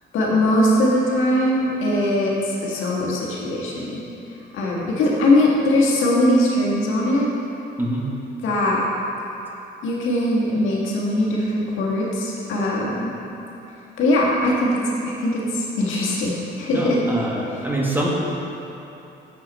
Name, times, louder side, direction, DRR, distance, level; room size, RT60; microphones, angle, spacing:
voice 1, 0.1-4.0 4.5-7.3 8.4-8.8 9.8-13.1 14.0-14.7 15.0-17.0, left 1 dB, 85° left, -4 dB, 1.6 m, -21 dB
voice 2, 7.8-8.1 16.7-18.1, right 1 dB, 10° right, -3 dB, 1.4 m, -25 dB
7.3 x 6.1 x 5.4 m, 2.9 s
cardioid pair, 90°, 20 cm